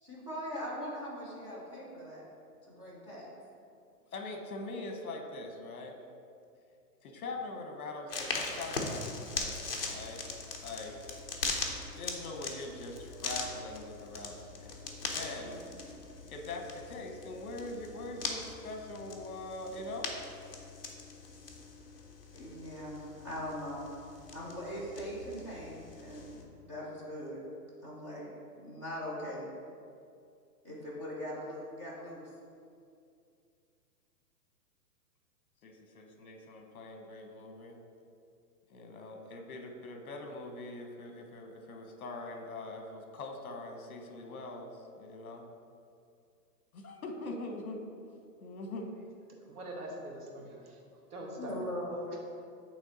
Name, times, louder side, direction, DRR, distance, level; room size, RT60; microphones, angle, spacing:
voice 1, 0.0-2.3 2.7-3.3 15.3-15.6 22.3-23.8 24.3-27.4 27.8-28.3 28.6-29.5 30.6-32.3 51.4-52.2, equal, 20° right, -7 dB, 0.7 m, -41 dB
voice 2, 4.1-5.9 7.0-10.2 10.6-10.9 12.0-15.6 16.3-20.2 35.6-37.8 38.7-45.5 46.7-47.8 48.4-48.9, left 2 dB, 60° left, 3 dB, 1.0 m, -43 dB
sound 1, 8.1-26.4, left 3 dB, 40° left, 0.5 m, -41 dB
voice 3, 49.5-50.6 51.1-51.7 52.1-52.2, right 1 dB, 65° right, -1 dB, 1.4 m, -43 dB
8.4 x 3.3 x 3.9 m, 2.4 s
hypercardioid pair, 180°, 49 cm